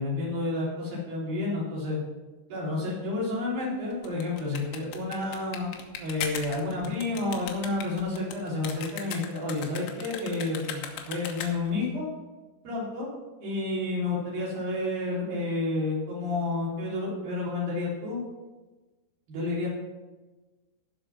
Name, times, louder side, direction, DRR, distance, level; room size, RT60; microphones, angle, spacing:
voice 1, 0.0-2.0 2.5-5.7 6.0-12.1 12.6-13.1 13.4-18.2 19.3-19.7, left 2 dB, 50° right, -5 dB, 5.1 m, -30 dB
sound 1, 3.9-11.8, left 8 dB, 90° left, 3.6 m, -38 dB
15.0 x 6.0 x 6.0 m, 1.2 s
omnidirectional pair, 5.5 m